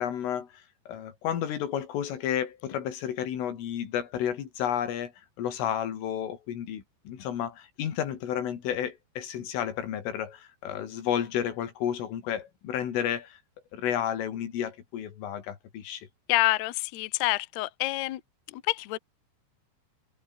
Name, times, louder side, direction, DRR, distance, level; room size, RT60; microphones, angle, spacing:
voice 1, 0.0-5.1 5.4-13.4 13.7-16.1, left 9 dB, 90° left, 5.6 m, -31 dB
voice 2, 16.3-18.2 18.5-19.0, left 19 dB, 70° left, 2.9 m, -27 dB
omnidirectional pair, 5.6 m